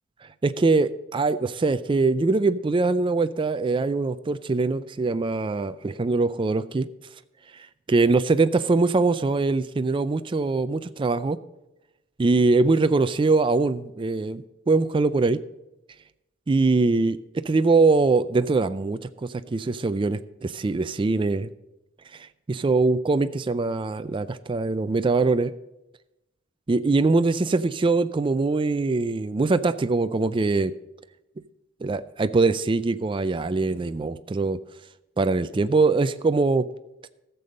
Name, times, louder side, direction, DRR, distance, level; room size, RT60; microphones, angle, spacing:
voice 1, 0.4-6.9 7.5-11.4 12.2-15.4 16.5-19.0 19.3-21.5 22.1-25.5 26.7-30.7 31.8-34.6 35.2-36.7, right 3 dB, 25° right, 12 dB, 0.3 m, -22 dB
14.5 x 6.9 x 5.3 m, 0.94 s
head